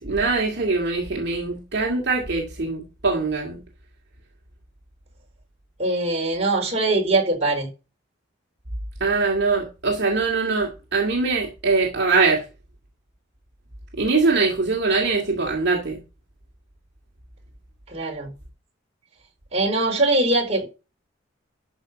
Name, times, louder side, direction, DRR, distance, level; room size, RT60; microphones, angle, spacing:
voice 1, 0.0-3.6 9.0-12.4 14.0-16.0, right 3 dB, 60° right, 2.2 m, -22 dB
voice 2, 5.8-7.7 17.9-18.3 19.5-20.7, right 2 dB, 35° right, 4.1 m, -22 dB
12.5 x 5.3 x 5.2 m
head